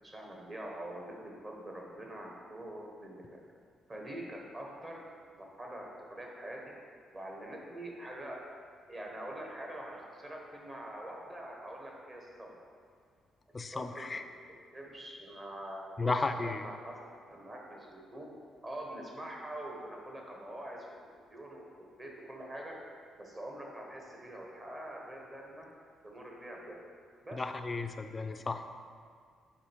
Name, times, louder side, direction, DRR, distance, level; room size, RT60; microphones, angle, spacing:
voice 1, 0.0-3.2 3.9-5.0 5.3-6.7 7.1-8.4 8.9-12.5 13.7-14.2 14.7-17.0 17.3-18.3 18.6-20.9 21.3-21.7 22.0-22.8 23.2-25.7 26.0-26.7 27.2-27.4, right 1 dB, 30° right, -1 dB, 1.2 m, -44 dB
voice 2, 13.5-14.2 16.0-16.6 27.3-28.8, left 3 dB, 30° left, 8 dB, 0.3 m, -34 dB
4.9 x 4.3 x 4.4 m, 2.1 s
cardioid pair, 90°, 0 cm